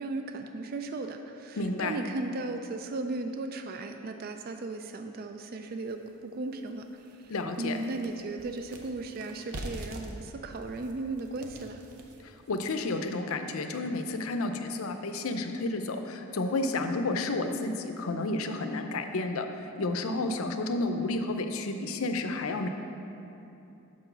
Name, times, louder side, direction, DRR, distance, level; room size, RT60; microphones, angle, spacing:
voice 1, 0.0-11.8, right 2 dB, 40° right, 6 dB, 0.3 m, -36 dB
voice 2, 1.5-2.0 7.3-7.8 12.2-22.7, left 2 dB, 70° left, 6 dB, 0.5 m, -31 dB
sound 1, 5.9-6.0 6.5-6.6 7.0-13.0, right 1 dB, 85° right, 0.7 m, -44 dB
6.0 x 5.1 x 6.7 m, 2.9 s
head